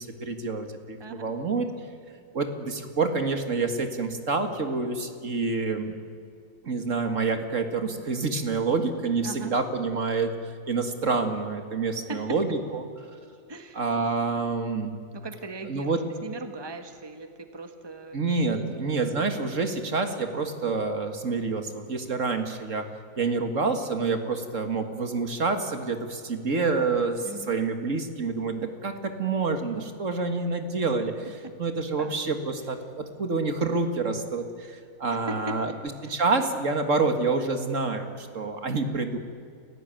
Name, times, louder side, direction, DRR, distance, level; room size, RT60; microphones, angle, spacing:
voice 1, 0.0-1.7 2.3-5.9 6.6-12.8 13.8-15.0 15.7-16.0 18.1-22.8 23.2-31.3 31.6-35.7 36.0-39.2, right 4 dB, 60° right, 6 dB, 2.2 m, -27 dB
voice 2, 1.0-1.3 9.2-9.6 12.1-12.6 13.5-13.8 15.1-19.0 27.2-27.6 31.3-31.5 32.0-32.2 35.1-35.6 36.0-36.3, right 2 dB, 20° right, 6 dB, 1.6 m, -40 dB
29.5 x 16.0 x 9.1 m, 2.3 s
omnidirectional pair, 1.5 m